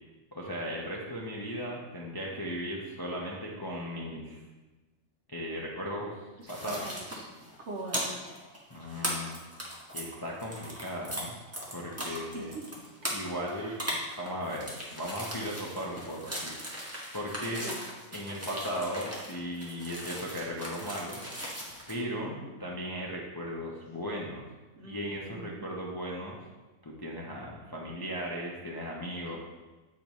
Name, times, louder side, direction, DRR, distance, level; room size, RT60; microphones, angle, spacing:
voice 1, 0.3-4.4 5.3-6.2 6.5-6.9 8.7-9.4 9.9-11.4 11.7-12.5 13.1-13.8 14.2-16.5 16.8-17.7 18.1-21.3 21.9-24.5 24.8-26.4 26.8-29.4, equal, 25° left, -3 dB, 0.5 m, -37 dB
voice 2, 6.4-7.2 7.7-8.2 12.0-12.6 13.5-13.8 17.4-17.8 21.9-22.5 24.8-25.7, right 2 dB, 55° right, 0 dB, 1.1 m, -43 dB
sound 1, 6.5-11.2 11.5-21.9, equal, 10° right, 1.1 m, -39 dB
8.6 x 5.1 x 3.1 m, 1.2 s
omnidirectional pair, 1.6 m